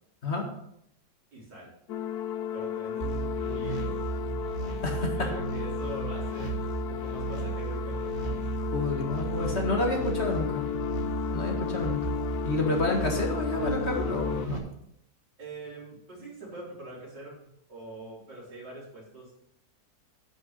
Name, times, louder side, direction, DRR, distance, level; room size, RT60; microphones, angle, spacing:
voice 1, 1.3-1.7 2.5-4.0 5.0-8.1 15.4-17.4 17.7-19.3, right 2 dB, 85° right, -5 dB, 5.1 m, -43 dB
sound 1, 1.9-14.5, left 11 dB, 70° left, 1.1 m, -34 dB
sound 2, 3.0-14.6, right 6 dB, 35° right, 1.9 m, -35 dB
voice 2, 4.8-5.3 8.6-10.7 11.3-12.2 12.4-14.6, left 2 dB, 40° left, 1 dB, 2.0 m, -29 dB
9.7 x 6.5 x 6.6 m, 0.76 s
omnidirectional pair, 1.8 m